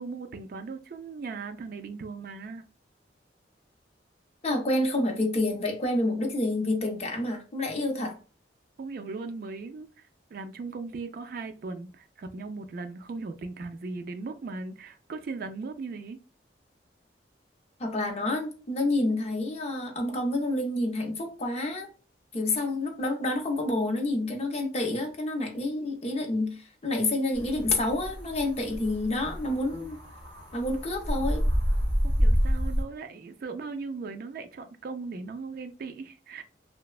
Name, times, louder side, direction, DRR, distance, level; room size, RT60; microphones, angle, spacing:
voice 1, 0.0-2.6 8.8-16.2 32.0-36.4, right 4 dB, 50° right, 0.3 m, -38 dB
voice 2, 4.4-8.2 17.8-21.9 22.3-30.0 30.5-31.4, left 2 dB, 35° left, 0.6 m, -28 dB
sound 1, 27.3-32.8, equal, 70° right, 1.0 m, -28 dB
3.1 x 2.0 x 2.3 m
head